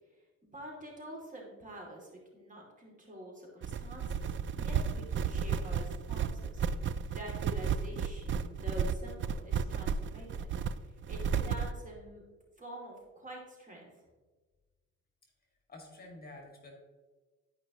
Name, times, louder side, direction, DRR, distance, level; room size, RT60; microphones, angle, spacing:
voice 1, 0.5-10.5 10.8-12.2 12.6-13.9, equal, 25° right, -2 dB, 2.6 m, -47 dB
sound 1, 3.6-11.7, right 7 dB, 40° right, 0.4 m, -33 dB
voice 2, 15.7-16.7, left 2 dB, 30° left, 0 dB, 2.1 m, -49 dB
12.5 x 5.3 x 3.0 m, 1.3 s
cardioid pair, 90°, 30 cm